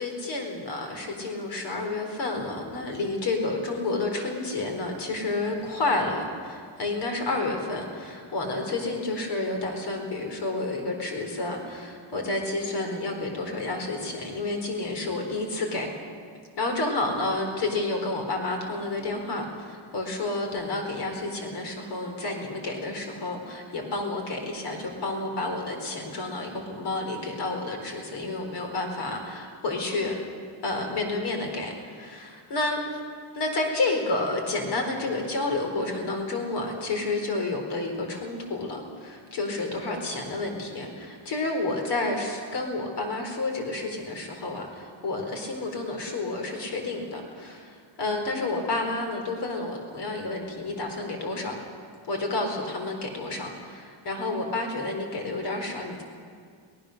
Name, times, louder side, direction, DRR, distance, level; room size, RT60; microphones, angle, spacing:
voice 1, 0.0-15.9 16.6-30.2 30.6-33.0 33.3-51.5 52.1-56.0, left 2 dB, 55° left, 3 dB, 4.3 m, -30 dB
24.0 x 19.0 x 6.6 m, 2.1 s
cardioid pair, 175°, 49 cm